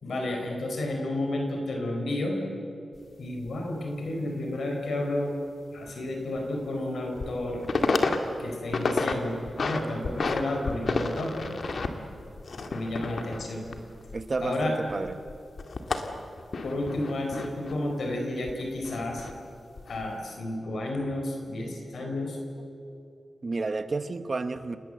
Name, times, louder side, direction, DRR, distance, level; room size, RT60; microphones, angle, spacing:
voice 1, 0.0-2.4 3.2-5.4 5.7-7.6 8.4-11.6 12.7-13.7 14.4-14.8 16.6-19.2 19.9-22.4, left 1 dB, 80° left, 2 dB, 4.5 m, -31 dB
sound 1, 2.9-3.0 3.5-3.6 5.8-5.9 6.4-6.5 7.0-7.4 7.6-8.2 8.5-9.1 9.5-10.4 10.7-14.6 14.9-17.7 18.5-19.3 19.8-20.1, left 3 dB, 60° left, 2.0 m, -30 dB
voice 2, 14.1-15.2 23.4-24.8, right 3 dB, 40° right, 10 dB, 1.2 m, -31 dB
30.0 x 19.0 x 7.8 m, 2.7 s
wide cardioid pair, 110°, 0 cm